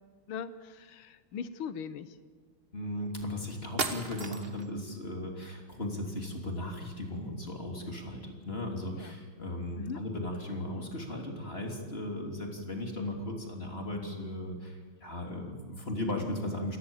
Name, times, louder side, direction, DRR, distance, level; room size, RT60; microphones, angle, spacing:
voice 1, 0.3-2.2 8.9-9.2 9.8-10.0, left 7 dB, 75° left, 13 dB, 1.9 m, -40 dB
voice 2, 2.7-16.8, left 1 dB, 25° left, 2 dB, 3.4 m, -37 dB
sound 1, 3.2-3.3 3.8-4.7, right 4 dB, 30° right, 1.3 m, -34 dB
28.0 x 18.5 x 7.3 m, 1.5 s
omnidirectional pair, 2.4 m